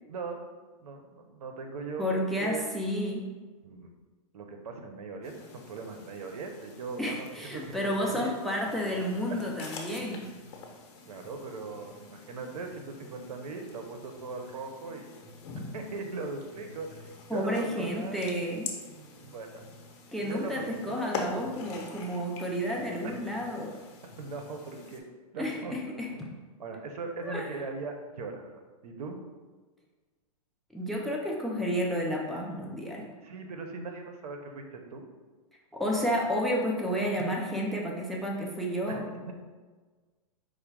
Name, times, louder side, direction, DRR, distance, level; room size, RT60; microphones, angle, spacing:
voice 1, 0.1-0.5 0.8-2.7 3.6-3.9 4.3-8.3 9.3-9.4 11.1-15.2 15.7-18.2 18.8-19.7 20.2-21.2 23.0-23.2 24.2-25.0 25.3-25.7 26.1-29.2 33.2-35.1 38.9-39.3, right 4 dB, 80° right, 4 dB, 0.8 m, -40 dB
voice 2, 2.0-3.2 7.0-10.3 17.3-18.7 20.1-23.7 25.4-26.1 27.2-27.5 30.7-33.1 35.7-39.0, equal, ahead, -2 dB, 0.4 m, -31 dB
sound 1, 5.2-25.0, left 4 dB, 50° left, 0.9 m, -45 dB
4.8 x 2.1 x 4.6 m, 1.4 s
hypercardioid pair, 145°, 19 cm